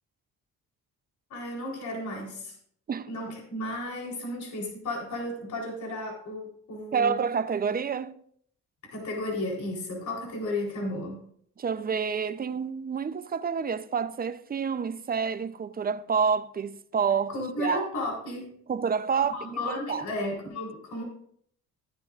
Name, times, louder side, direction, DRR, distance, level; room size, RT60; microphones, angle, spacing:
voice 1, 1.3-2.5 3.1-7.1 8.9-11.2 17.3-18.5 19.3-21.0, left 1 dB, 70° left, 4.0 m, -33 dB
voice 2, 6.9-8.2 11.6-17.9 18.7-19.3 19.7-20.0, right 6 dB, 30° right, 0.6 m, -28 dB
14.0 x 11.0 x 2.5 m
cardioid pair, 90°, 30 cm